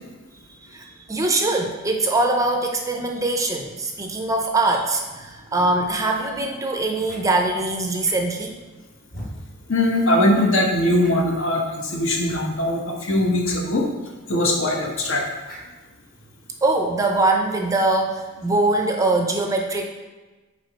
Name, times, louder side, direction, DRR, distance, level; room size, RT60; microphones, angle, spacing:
voice 1, 0.7-8.5 16.6-19.8, right 2 dB, 15° right, 3 dB, 0.5 m, -22 dB
sound 1, 7.0-7.2 8.0-8.4 9.1-9.3 9.9-10.0 10.3-10.4 11.0-11.3 12.2-12.4 13.4-13.5 13.8-13.9 15.4-15.7, equal, 45° left, 1.6 m, -39 dB
voice 2, 9.7-13.9 14.3-15.3, left 1 dB, 65° left, 1 dB, 1.1 m, -21 dB
6.6 x 4.6 x 4.1 m, 1.2 s
head